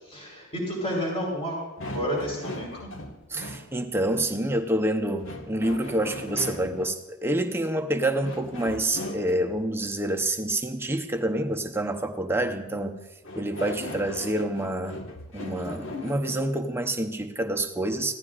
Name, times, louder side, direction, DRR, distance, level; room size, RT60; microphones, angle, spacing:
voice 1, 0.1-1.6 1.9-2.9, equal, 30° left, -2 dB, 4.2 m, -30 dB
sound 1, 1.8-3.7 5.2-6.9 8.2-9.6 13.2-16.5, left 1 dB, 70° left, 1.6 m, -38 dB
voice 2, 3.3-13.0 13.4-15.0 15.3-18.1, right 1 dB, 10° right, 4 dB, 0.7 m, -27 dB
24.5 x 16.0 x 2.5 m, 1.0 s
head